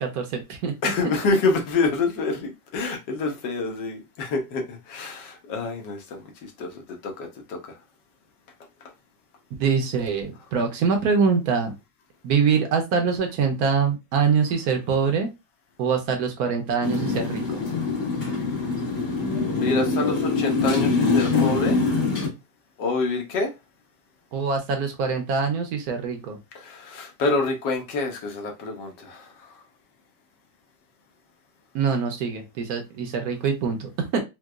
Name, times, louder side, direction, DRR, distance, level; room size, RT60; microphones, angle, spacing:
voice 1, 0.0-0.9 9.6-11.7 12.2-15.3 15.8-17.6 24.3-26.4 31.7-34.2, right 5 dB, 65° right, 4 dB, 1.1 m, -24 dB
voice 2, 0.8-7.6 19.5-21.8 22.8-23.5 26.5-29.5, left 3 dB, 85° left, 3 dB, 1.5 m, -27 dB
Motorcycle, 16.8-22.3, left 4 dB, 70° left, 2.1 m, -24 dB
4.5 x 2.2 x 2.3 m, 0.24 s
omnidirectional pair, 1.9 m